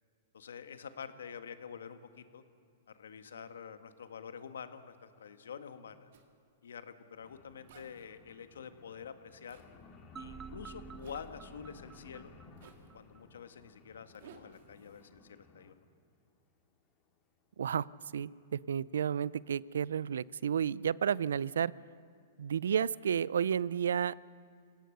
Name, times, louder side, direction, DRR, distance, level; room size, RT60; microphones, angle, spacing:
voice 1, 0.3-2.4 2.9-6.1 6.6-9.6 10.2-12.3 12.9-15.7, left 7 dB, 85° left, 10 dB, 1.5 m, -47 dB
Zipper (clothing), 6.1-6.3 7.7-8.1 9.5-9.7 11.0-11.3 12.6-12.9 14.1-15.0, right 7 dB, 65° right, 2.4 m, -57 dB
sound 1, 7.2-15.7 16.3-16.4 16.7-16.8 17.1-17.2 17.4-17.5 17.8-17.9 18.6-18.7 19.0-19.1 19.4-19.5 19.7-19.8 20.1-20.2, left 4 dB, 30° left, 3.7 m, -58 dB
sound 2, 10.2-13.2, right 6 dB, 20° right, 0.5 m, -50 dB
voice 2, 18.1-21.7 22.4-24.3, right 8 dB, 85° right, 22 dB, 0.4 m, -32 dB
26.5 x 17.5 x 6.6 m, 2.4 s
hypercardioid pair, 130°, 0 cm